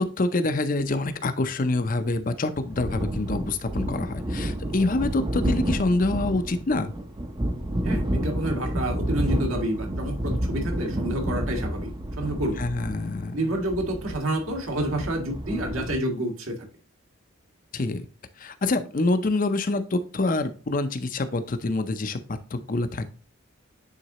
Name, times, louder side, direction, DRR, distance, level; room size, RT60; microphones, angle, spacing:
voice 1, 0.0-6.9 12.6-13.4 17.7-18.1 18.4-23.0, left 2 dB, 40° left, 10 dB, 0.5 m, -26 dB
sound 1, 2.6-16.0, right 1 dB, 20° right, 0.5 m, -30 dB
voice 2, 7.8-11.9 12.2-12.6 13.3-16.6, right 1 dB, 80° right, 2 dB, 1.9 m, -28 dB
9.2 x 3.9 x 3.0 m, 0.36 s
head